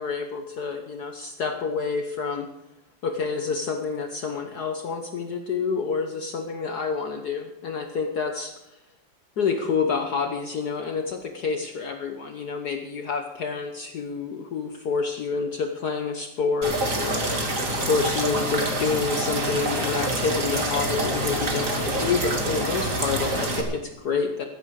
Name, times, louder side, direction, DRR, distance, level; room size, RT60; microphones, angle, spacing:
voice 1, 0.0-2.5 3.0-8.5 9.4-24.4, left 5 dB, 60° left, 5 dB, 1.5 m, -28 dB
sound 1, 16.6-23.6, right 1 dB, 45° right, 2.9 m, -26 dB
16.0 x 15.0 x 4.8 m, 0.87 s
omnidirectional pair, 2.0 m